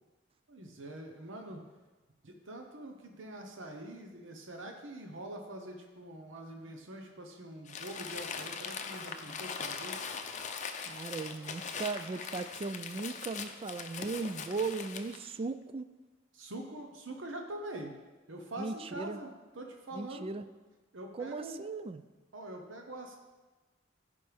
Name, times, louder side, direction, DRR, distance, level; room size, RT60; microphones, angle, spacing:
voice 1, 0.5-1.7 2.2-10.0 16.3-17.9 18.3-20.3 20.9-21.7 22.3-23.2, right 1 dB, 90° right, 3 dB, 0.9 m, -44 dB
Crumpling crinkling, 7.7-15.3, left 6 dB, 40° left, 0.6 m, -41 dB
voice 2, 10.8-15.9 18.6-19.2 19.9-20.4 21.1-22.0, right 4 dB, 30° right, 11 dB, 0.3 m, -37 dB
14.5 x 5.3 x 3.5 m, 1.2 s
head